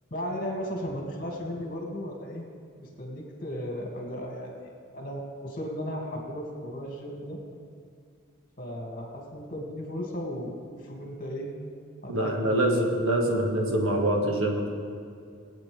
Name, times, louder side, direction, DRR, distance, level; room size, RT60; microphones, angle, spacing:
voice 1, 0.1-2.4 2.7-4.5 4.9-7.4 8.6-11.5 12.0-12.7, equal, 40° left, -1 dB, 2.5 m, -35 dB
voice 2, 12.1-14.7, right 1 dB, 80° right, 0 dB, 1.9 m, -25 dB
22.5 x 8.9 x 3.6 m, 2.4 s
head